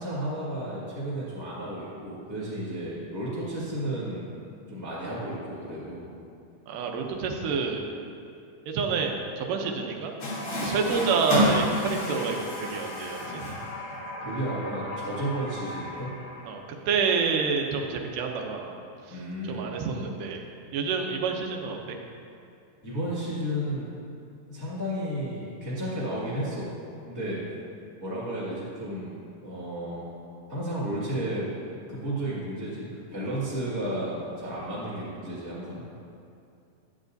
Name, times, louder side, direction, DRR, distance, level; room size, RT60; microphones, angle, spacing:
voice 1, 0.0-4.2 4.7-6.1 14.2-16.1 19.1-19.8 22.8-23.9 24.5-26.7 27.0-27.4 28.0-29.1 29.4-30.1 30.5-31.5 31.9-36.0, right 1 dB, 10° left, -10 dB, 1.0 m, -33 dB
voice 2, 6.7-7.9 8.7-10.1 10.6-13.6 16.5-18.7 19.1-19.2 19.4-20.4 20.7-22.0, right 5 dB, 85° right, 2 dB, 2.3 m, -28 dB
Water tap faucet, 10.2-16.5, left 1 dB, 60° left, 0.8 m, -31 dB
9.8 x 8.4 x 2.6 m, 2.5 s
omnidirectional pair, 3.7 m